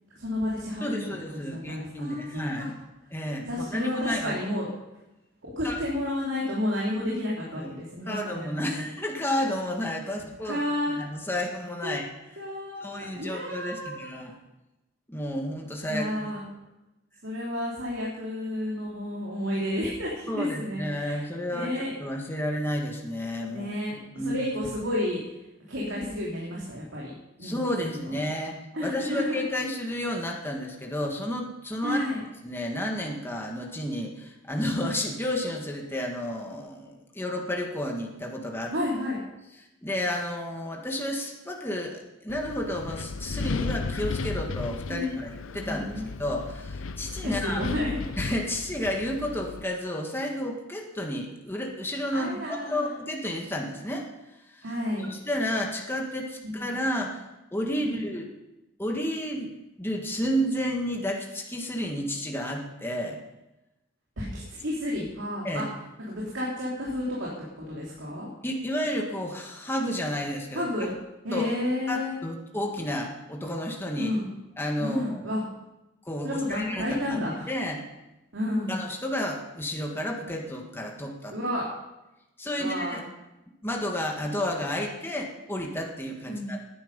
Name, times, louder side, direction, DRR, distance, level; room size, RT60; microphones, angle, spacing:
voice 1, 0.2-2.7 3.5-4.7 5.4-8.8 10.2-11.0 11.8-12.0 12.4-14.2 15.9-16.4 17.2-21.2 21.5-21.9 23.5-25.2 25.7-27.1 27.4-28.2 28.7-29.4 31.8-32.2 38.7-39.2 44.9-45.3 45.6-46.0 47.2-48.0 52.1-52.9 54.6-55.1 56.4-56.7 57.8-58.0 64.2-65.6 66.1-67.3 67.6-68.3 70.5-70.9 71.2-72.1 74.0-74.3 74.8-75.4 76.2-77.5 78.3-78.8 81.3-81.7 82.6-83.0 86.2-86.5, left 1 dB, 65° right, -5 dB, 3.1 m, -31 dB
voice 2, 0.8-2.7 3.1-4.4 5.6-5.8 7.5-7.7 8.1-12.1 12.8-14.3 15.1-16.0 20.3-23.7 24.2-24.4 27.4-32.0 32.4-38.7 39.8-45.3 45.5-45.9 46.2-47.6 48.2-52.3 52.7-54.1 54.5-54.7 55.0-57.2 57.5-58.2 58.8-59.5 59.8-63.2 65.4-65.6 68.4-70.7 71.3-71.5 71.9-74.1 74.6-75.4 76.1-77.8 78.7-81.3 82.4-83.1 83.6-86.6, left 1 dB, 10° left, 0 dB, 1.8 m, -31 dB
Wind, 42.3-49.6, left 4 dB, 75° left, 0.6 m, -35 dB
17.5 x 10.5 x 5.4 m, 0.97 s
head